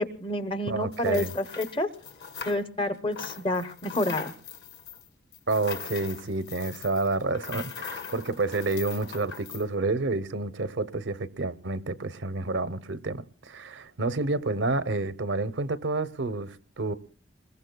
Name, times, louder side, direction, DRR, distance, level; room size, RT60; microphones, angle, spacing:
voice 1, 0.0-1.9 2.5-4.3, left 1 dB, 25° left, 0.7 m, -29 dB
voice 2, 0.7-1.3 5.5-16.9, right 3 dB, 75° right, 0.7 m, -29 dB
sound 1, 0.9-2.9 3.1-9.6, left 6 dB, 60° left, 1.8 m, -41 dB
28.0 x 21.0 x 2.2 m
head